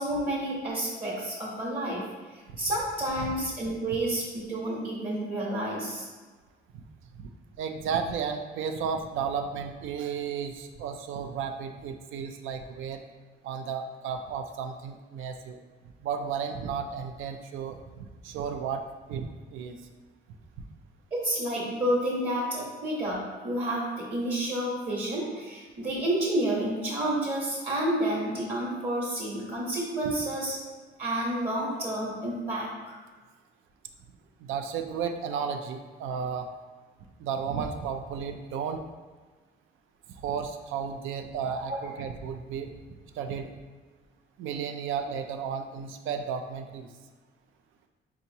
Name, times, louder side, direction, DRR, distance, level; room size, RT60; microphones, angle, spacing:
voice 1, 0.0-2.1 2.3-6.1 21.1-30.6 31.0-33.0 41.7-41.8, right 1 dB, 40° right, -5 dB, 1.0 m, -30 dB
voice 2, 7.6-13.0 13.4-15.6 16.0-18.8 19.1-19.8 30.0-30.1 34.4-36.5 37.2-38.8 40.1-42.7 43.1-43.5 44.4-46.9, right 6 dB, 80° right, 6 dB, 0.4 m, -33 dB
4.5 x 2.9 x 2.7 m, 1.4 s
cardioid pair, 90°, 20 cm